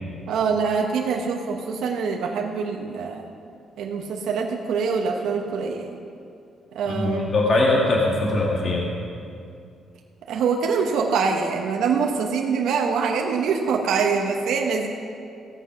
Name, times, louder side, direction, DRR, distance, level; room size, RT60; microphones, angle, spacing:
voice 1, 0.3-3.3 3.8-6.0 6.7-7.3 10.3-14.9, right 5 dB, 85° right, 1 dB, 1.0 m, -24 dB
voice 2, 6.8-8.8, left 2 dB, 40° left, -2 dB, 1.8 m, -21 dB
16.0 x 7.6 x 5.9 m, 2.4 s
cardioid pair, 150°, 0 cm